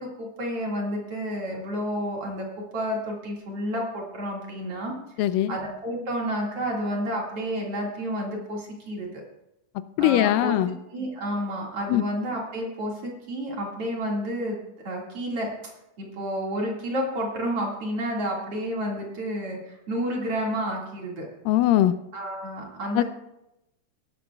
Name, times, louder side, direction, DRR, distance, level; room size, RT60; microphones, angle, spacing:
voice 1, 0.0-9.2 10.0-10.6 10.9-14.6 14.8-15.5 16.0-21.3 22.1-23.0, equal, 45° right, -2 dB, 2.8 m, -30 dB
voice 2, 5.2-5.6 10.0-10.8 11.9-12.0 21.5-21.9 23.0-23.1, left 13 dB, 85° left, 13 dB, 2.2 m, -21 dB
18.5 x 11.5 x 2.3 m, 0.89 s
omnidirectional pair, 3.9 m